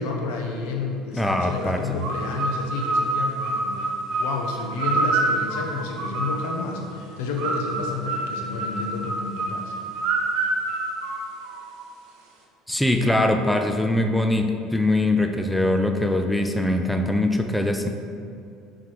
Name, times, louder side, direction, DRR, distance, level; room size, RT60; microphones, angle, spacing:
voice 1, 0.0-3.8 4.2-6.8 7.2-9.7, left 3 dB, 90° left, 1 dB, 0.9 m, -30 dB
voice 2, 1.1-1.8 12.7-17.9, left 1 dB, ahead, 5 dB, 0.4 m, -22 dB
sound 1, 2.0-6.7 7.4-11.8, right 2 dB, 65° right, 1.2 m, -27 dB
5.7 x 4.8 x 4.6 m, 2.5 s
cardioid pair, 130°, 0 cm